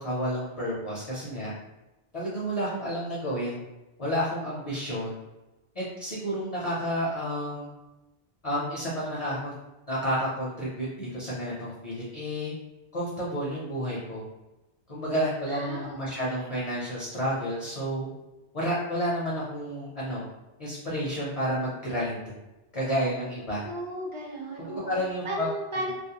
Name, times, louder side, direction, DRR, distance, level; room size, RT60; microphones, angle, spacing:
voice 1, 0.0-1.5 2.1-3.6 4.0-5.2 5.7-7.7 8.4-9.5 9.9-12.5 12.9-14.2 14.9-18.1 18.5-20.2 20.6-22.2 22.7-23.6 24.7-25.5, equal, 45° left, -7 dB, 0.5 m, -30 dB
voice 2, 15.5-16.5 23.6-24.9 25.2-25.9, right 1 dB, 35° right, -4 dB, 0.6 m, -35 dB
2.5 x 2.1 x 2.8 m, 1.0 s
omnidirectional pair, 1.1 m